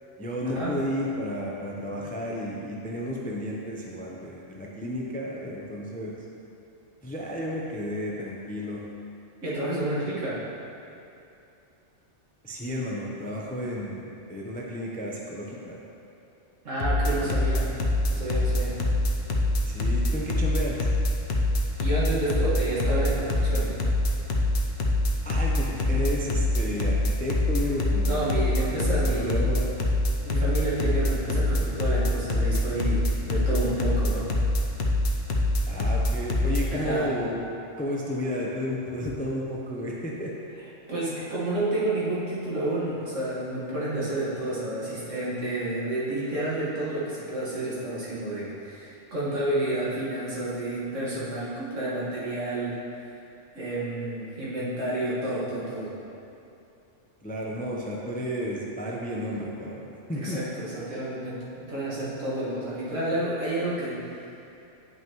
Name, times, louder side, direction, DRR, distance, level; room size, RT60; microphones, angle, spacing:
voice 1, 0.2-6.1 7.0-8.8 12.4-15.8 17.2-17.3 19.7-20.8 25.2-28.6 29.0-29.7 35.7-37.4 37.8-40.3 57.2-60.4, equal, 10° left, -3 dB, 0.4 m, -32 dB
voice 2, 9.4-10.4 16.6-17.7 18.1-18.8 21.8-23.7 28.1-29.4 30.2-34.3 36.7-37.1 40.9-52.8 53.5-55.9 60.1-64.0, right 1 dB, 75° right, -9 dB, 2.1 m, -30 dB
sound 1, 16.8-36.6, left 1 dB, 60° left, 0.9 m, -24 dB
9.3 x 5.7 x 3.0 m, 2.8 s
omnidirectional pair, 1.3 m